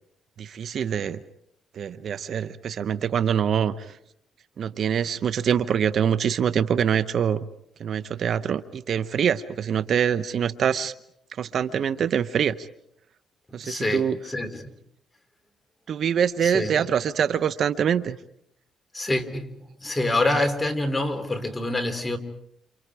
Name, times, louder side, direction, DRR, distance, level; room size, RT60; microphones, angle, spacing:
voice 1, 0.4-1.2 1.7-3.9 4.6-7.4 7.8-10.9 11.4-12.7 13.5-14.2 15.9-18.2, right 8 dB, 60° right, 13 dB, 0.9 m, -24 dB
voice 2, 13.6-14.7 16.4-16.8 18.9-19.5 19.8-22.2, left 2 dB, 15° left, 7 dB, 3.3 m, -26 dB
29.5 x 29.0 x 4.9 m, 0.71 s
cardioid pair, 90°, 0 cm